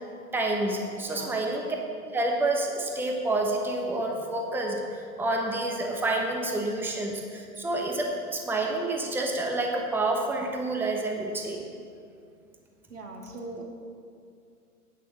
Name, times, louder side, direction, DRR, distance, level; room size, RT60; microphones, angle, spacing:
voice 1, 0.3-1.6 2.1-11.6, right 2 dB, 5° right, 1 dB, 1.1 m, -28 dB
voice 2, 1.1-1.4 12.9-13.6, right 2 dB, 85° right, 1 dB, 2.3 m, -40 dB
10.5 x 9.3 x 7.2 m, 2.4 s
figure-of-eight pair, 115°, 45 cm